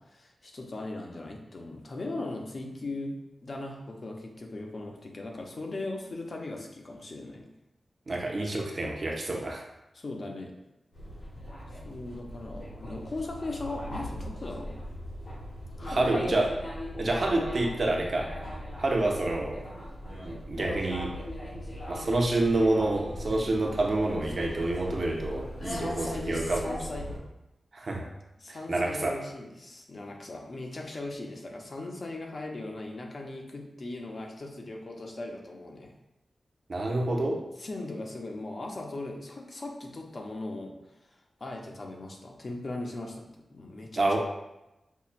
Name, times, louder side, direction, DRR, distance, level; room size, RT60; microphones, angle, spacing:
voice 1, 0.0-7.5 9.9-10.6 11.8-14.8 15.8-16.4 25.6-27.1 28.4-35.9 37.6-40.7 41.4-44.2, left 2 dB, 45° left, 1 dB, 0.5 m, -38 dB
voice 2, 8.1-9.6 15.8-16.5 17.0-18.3 18.8-19.6 20.3-21.1 21.9-26.6 27.7-28.1 28.5-29.2 36.7-37.4 44.0-44.2, right 2 dB, 45° right, 0 dB, 0.5 m, -28 dB
sound 1, 10.9-27.2, equal, 70° left, 1.4 m, -39 dB
5.4 x 2.1 x 2.4 m, 0.93 s
wide cardioid pair, 150°, 0 cm